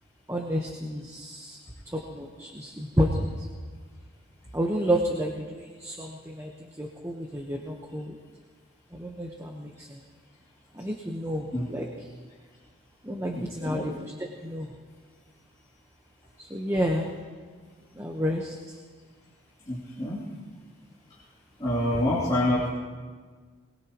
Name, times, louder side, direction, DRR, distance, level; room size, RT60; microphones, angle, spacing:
voice 1, 0.3-1.6 1.8-3.5 4.5-8.1 8.9-10.0 10.7-11.9 13.0-13.9 14.4-14.7 16.4-17.1 17.9-18.8, equal, 15° right, 1 dB, 1.1 m, -30 dB
voice 2, 13.3-13.8 19.6-20.3 21.1-21.2 21.6-22.7, left 1 dB, 20° left, -9 dB, 2.9 m, -27 dB
22.0 x 21.5 x 3.0 m, 1.5 s
head